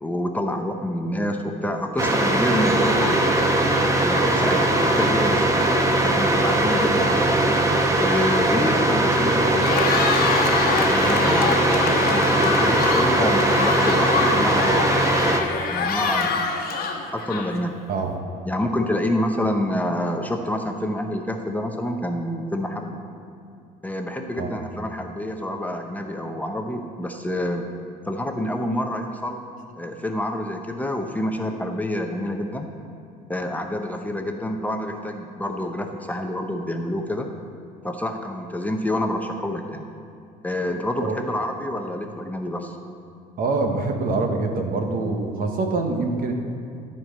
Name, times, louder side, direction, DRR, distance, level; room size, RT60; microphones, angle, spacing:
voice 1, 0.0-3.2 4.0-5.6 6.0-7.1 8.0-9.8 10.9-15.0 15.7-16.4 17.1-17.8 18.5-23.0 23.8-27.7 28.1-29.4 29.8-32.7 33.3-37.3 37.8-39.9 40.4-42.8, left 1 dB, 10° left, 3 dB, 0.7 m, -27 dB
sound 1, 2.0-15.4, right 1 dB, 20° right, 1.0 m, -20 dB
Cheering, 9.5-17.7, left 5 dB, 60° left, 1.1 m, -25 dB
voice 2, 43.4-46.3, right 3 dB, 55° right, 4 dB, 1.2 m, -25 dB
13.5 x 4.6 x 6.5 m, 2.5 s
cardioid pair, 110°, 17 cm